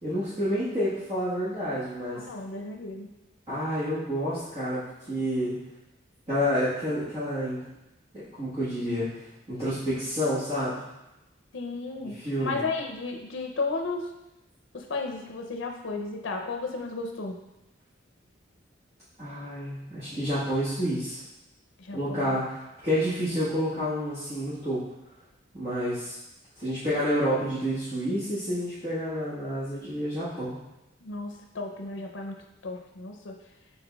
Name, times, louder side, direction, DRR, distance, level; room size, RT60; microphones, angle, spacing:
voice 1, 0.0-2.2 3.5-5.6 6.3-7.6 8.4-9.1 9.5-10.8 12.2-12.6 19.2-21.2 21.9-24.8 25.5-26.2 26.6-30.6, equal, 30° right, -14 dB, 1.3 m, -29 dB
voice 2, 2.0-3.1 11.5-14.1 14.7-17.4 21.8-22.4 31.0-33.4, left 3 dB, 80° left, 3 dB, 0.5 m, -34 dB
5.7 x 3.8 x 2.3 m, 0.93 s
head